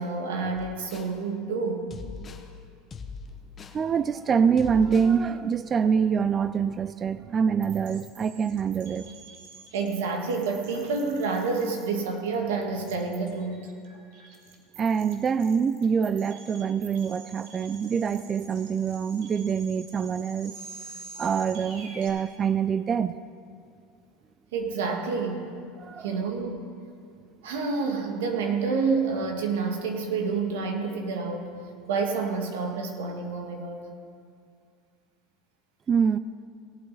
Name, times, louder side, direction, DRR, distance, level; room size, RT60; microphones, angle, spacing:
voice 1, 0.0-2.0 9.7-13.6 24.5-25.5 26.0-26.7 27.4-31.5 31.9-33.9, right 4 dB, 85° right, 3 dB, 1.5 m, -28 dB
sound 1, 0.6-1.2 1.9-2.5 2.9-3.8 4.6-5.2, left 4 dB, 30° left, 0.9 m, -41 dB
voice 2, 3.7-9.1 14.8-20.6 21.2-23.2 25.8-26.1 35.9-36.2, right 6 dB, 30° right, 14 dB, 0.3 m, -25 dB
sound 2, 7.6-22.1, right 4 dB, 65° right, 1.7 m, -48 dB
17.5 x 8.4 x 4.0 m, 2.4 s
supercardioid pair, 110°, 0 cm